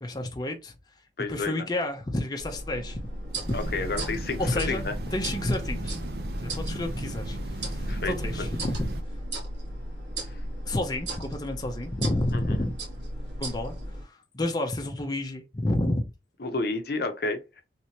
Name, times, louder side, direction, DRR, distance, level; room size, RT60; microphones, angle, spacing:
voice 1, 0.0-0.7 1.3-3.0 3.5-3.6 4.4-4.8 5.1-6.0 6.4-8.9 10.7-12.7 13.4-13.8 14.0-16.1, left 1 dB, 25° left, 0.6 m, -30 dB
voice 2, 1.2-1.7 3.5-4.9 7.9-8.5 10.2-10.4 12.3-12.7 16.4-17.4, left 3 dB, 60° left, 0.7 m, -31 dB
sound 1, 2.4-14.0, right 1 dB, 80° right, 1.6 m, -36 dB
Train, 3.3-9.0, right 1 dB, 60° right, 0.6 m, -35 dB
3.3 x 2.9 x 2.9 m
head